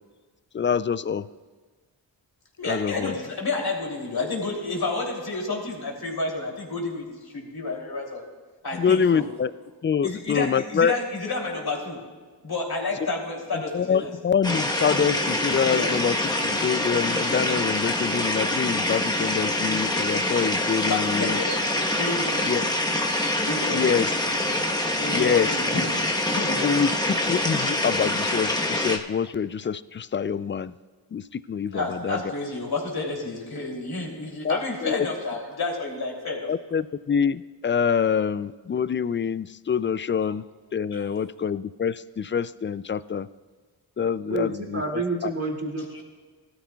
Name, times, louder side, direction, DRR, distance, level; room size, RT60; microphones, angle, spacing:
voice 1, 0.5-1.3 2.6-3.1 8.8-9.5 9.8-10.9 13.7-16.2 16.4-21.4 22.5-22.6 23.7-24.1 25.1-25.5 26.6-26.9 27.3-30.7 31.1-32.2 34.4-35.0 36.5-40.4 40.7-43.3 44.0-45.3, left 7 dB, 30° left, 17 dB, 0.3 m, -25 dB
voice 2, 2.6-8.2 8.6-9.2 10.0-12.0 12.4-14.1 15.7-15.9 20.9-21.6 22.0-22.3 23.4-24.1 25.0-26.0 26.3-26.8 31.7-36.5 40.9-41.0 45.9-46.0, left 3 dB, 50° left, -1 dB, 3.1 m, -30 dB
sound 1, 14.4-29.0, left 1 dB, 10° left, 1.1 m, -25 dB
voice 3, 44.3-46.0, right 2 dB, 30° right, 0 dB, 2.4 m, -29 dB
17.0 x 13.0 x 2.3 m, 1.4 s
supercardioid pair, 40°, 46 cm